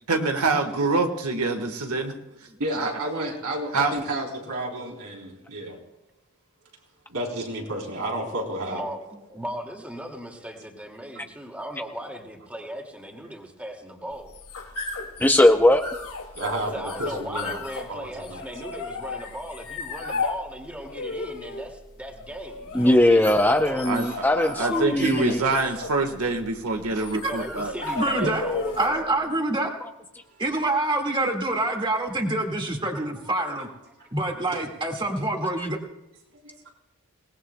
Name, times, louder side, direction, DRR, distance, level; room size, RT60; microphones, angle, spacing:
voice 1, 0.0-2.1 2.8-2.9 3.7-3.9 23.8-27.7 28.2-28.3, right 3 dB, 85° right, 5 dB, 1.5 m, -25 dB
voice 2, 2.6-5.8 7.1-8.8 16.4-17.6 17.9-18.4 24.0-24.1 26.9-27.1 34.5-34.6 36.4-36.7, right 1 dB, 70° right, -1 dB, 3.8 m, -31 dB
voice 3, 9.3-14.3 16.7-23.2 23.7-23.9 24.6-25.6 27.3-29.1 33.0-33.1, equal, 5° right, 1 dB, 2.2 m, -37 dB
sound 1, 14.1-29.0, left 4 dB, 80° left, 2.4 m, -35 dB
voice 4, 15.2-15.8 22.7-25.4 29.8-29.9, left 1 dB, 10° left, 5 dB, 0.6 m, -19 dB
voice 5, 28.0-28.4 28.8-29.7 30.4-33.7 34.1-35.8, right 2 dB, 20° right, 2 dB, 1.9 m, -26 dB
28.0 x 18.5 x 2.2 m, 0.96 s
head